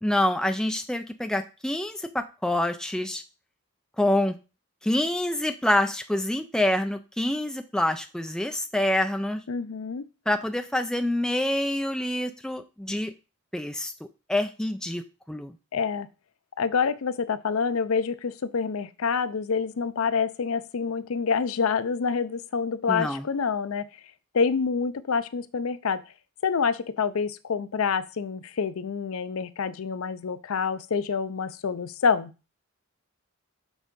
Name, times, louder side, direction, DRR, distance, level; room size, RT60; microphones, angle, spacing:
voice 1, 0.0-3.2 4.0-4.4 4.8-9.4 10.3-13.1 13.5-13.9 14.3-15.6 22.9-23.3, left 1 dB, 5° left, 7 dB, 0.3 m, -26 dB
voice 2, 9.5-10.0 15.7-16.1 16.6-23.8 24.3-26.0 26.4-32.3, left 5 dB, 70° left, 14 dB, 0.5 m, -27 dB
6.3 x 3.7 x 5.1 m, 0.31 s
head